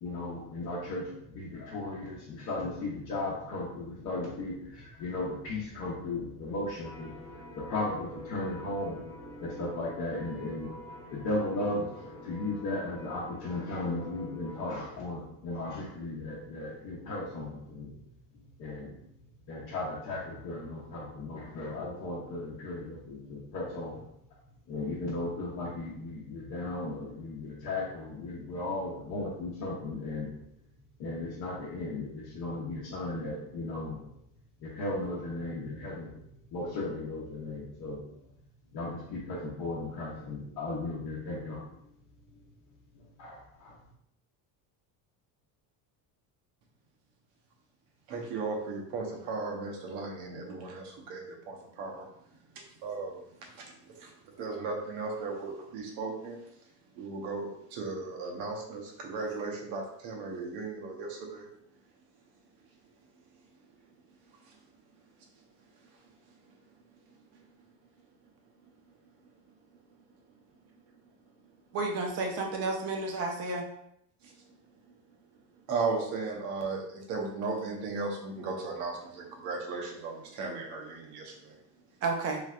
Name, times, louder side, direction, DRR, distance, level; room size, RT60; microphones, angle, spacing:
voice 1, 0.0-7.2 7.5-18.0 18.3-19.1 19.5-24.1 24.7-30.4 31.0-34.1 34.6-38.2 38.7-41.8 42.9-43.8, left 2 dB, 50° left, -7 dB, 0.8 m, -36 dB
sound 1, 6.8-14.7, left 1 dB, 15° left, 0.7 m, -46 dB
voice 2, 48.1-61.5 63.6-64.0 64.2-64.6 65.0-67.7 68.0-69.3 69.7-70.0 70.7-71.3 74.2-74.6 74.8-81.6, right 4 dB, 70° right, 0 dB, 0.9 m, -38 dB
voice 3, 71.7-73.6 82.0-82.4, right 3 dB, 40° right, 1 dB, 0.6 m, -31 dB
3.3 x 3.2 x 2.4 m, 0.74 s
cardioid pair, 170°, 40 cm